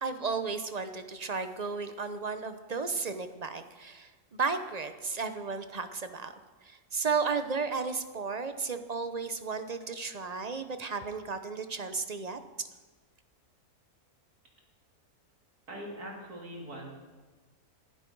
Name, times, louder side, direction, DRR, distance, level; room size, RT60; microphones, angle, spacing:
voice 1, 0.0-6.3 6.6-12.4, right 4 dB, 35° right, 9 dB, 0.6 m, -34 dB
voice 2, 15.7-16.9, equal, 80° right, -2 dB, 3.6 m, -42 dB
19.0 x 11.5 x 4.6 m, 1.3 s
omnidirectional pair, 1.6 m